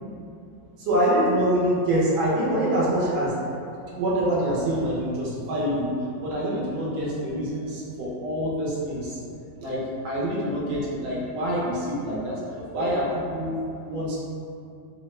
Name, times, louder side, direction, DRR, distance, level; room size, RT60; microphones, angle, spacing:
voice 1, 0.9-3.3 4.0-5.9 6.2-9.2 9.6-9.8 10.0-13.5 13.8-14.2, right 1 dB, 70° right, -6 dB, 1.2 m, -25 dB
3.5 x 2.0 x 3.1 m, 2.6 s
omnidirectional pair, 1.9 m